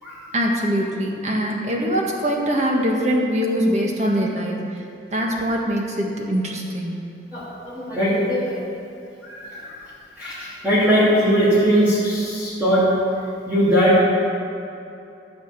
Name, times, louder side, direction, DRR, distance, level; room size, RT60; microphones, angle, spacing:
voice 1, 0.3-4.8 5.1-7.1, equal, 40° right, -1 dB, 1.7 m, -23 dB
voice 2, 7.3-8.6 9.2-9.8 10.2-12.8 13.5-14.0, equal, 10° right, -12 dB, 2.9 m, -20 dB
13.5 x 7.1 x 6.7 m, 2.7 s
head